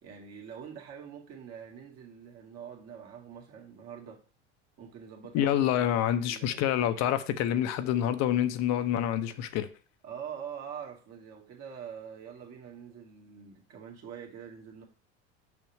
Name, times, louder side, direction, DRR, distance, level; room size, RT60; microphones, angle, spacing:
voice 1, 0.0-4.2 4.8-6.6 10.0-14.8, right 7 dB, 50° right, 2.3 m, -44 dB
voice 2, 5.3-9.7, left 11 dB, 50° left, 0.8 m, -27 dB
6.3 x 6.0 x 3.4 m
hypercardioid pair, 90°, 35 cm